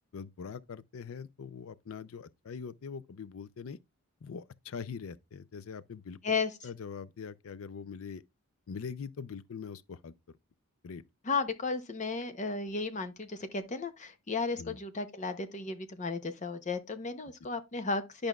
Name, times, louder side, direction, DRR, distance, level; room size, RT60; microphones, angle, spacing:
voice 1, 0.1-3.8 4.2-6.2 6.6-8.2 8.7-10.1 10.8-11.0 14.6-14.8, left 6 dB, 70° left, 0.4 m, -42 dB
voice 2, 6.2-6.7 11.3-18.3, left 4 dB, 35° left, 0.7 m, -34 dB
11.0 x 5.1 x 2.3 m
head